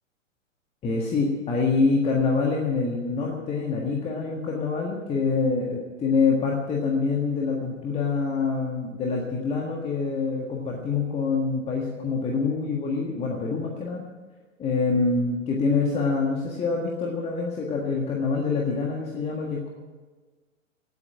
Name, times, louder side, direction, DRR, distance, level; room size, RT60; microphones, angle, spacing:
voice 1, 0.8-14.0 14.6-19.7, left 4 dB, 15° left, -1 dB, 1.7 m, -25 dB
18.0 x 8.4 x 8.6 m, 1.3 s
figure-of-eight pair, 115°, 39 cm